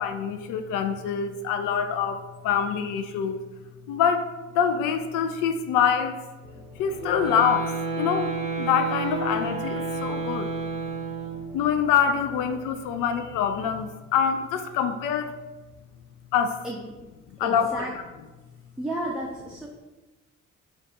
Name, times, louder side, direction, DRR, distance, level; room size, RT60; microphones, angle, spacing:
voice 1, 0.0-3.4 3.9-6.2 6.8-10.5 11.5-15.4 16.3-16.7 17.4-17.9, left 7 dB, 55° left, 8 dB, 0.5 m, -25 dB
sound 1, 6.4-13.9, equal, 85° right, 0.9 m, -48 dB
sound 2, 7.0-11.5, right 3 dB, 80° left, 1.2 m, -30 dB
voice 2, 17.4-17.9 18.8-19.7, right 1 dB, ahead, -3 dB, 0.6 m, -32 dB
4.6 x 2.3 x 3.8 m, 1.2 s
figure-of-eight pair, 40°, 39 cm